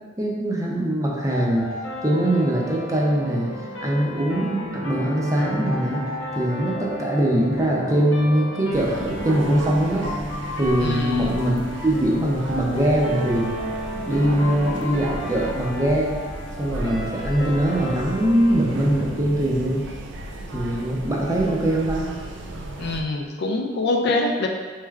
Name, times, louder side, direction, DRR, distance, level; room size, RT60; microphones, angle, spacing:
voice 1, 0.2-1.7 2.0-3.5 3.8-6.0 6.3-10.1 10.6-13.6 14.1-16.2 16.6-19.9 20.5-22.1, right 1 dB, 15° right, -4 dB, 0.5 m, -22 dB
sound 1, 1.3-20.2, equal, 80° left, 0.8 m, -33 dB
sound 2, 8.7-23.0, right 1 dB, 65° right, 0.4 m, -35 dB
voice 2, 10.8-11.3 22.8-24.5, left 2 dB, 60° left, 2 dB, 0.4 m, -24 dB
4.4 x 3.2 x 2.4 m, 1.4 s
head